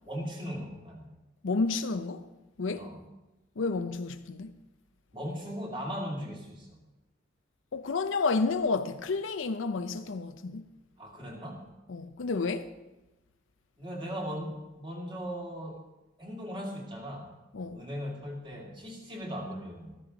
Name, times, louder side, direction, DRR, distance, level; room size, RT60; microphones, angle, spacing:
voice 1, 0.1-1.1 2.7-3.0 5.1-6.8 11.0-11.7 13.8-15.8 16.2-17.3 17.6-20.0, equal, 25° right, 2.4 m, -38 dB
voice 2, 1.4-2.3 2.6-2.9 3.6-4.5 7.7-10.6 11.9-12.7 17.5-17.8, left 4 dB, 80° left, 0.6 m, -30 dB
13.5 x 13.5 x 3.9 m
head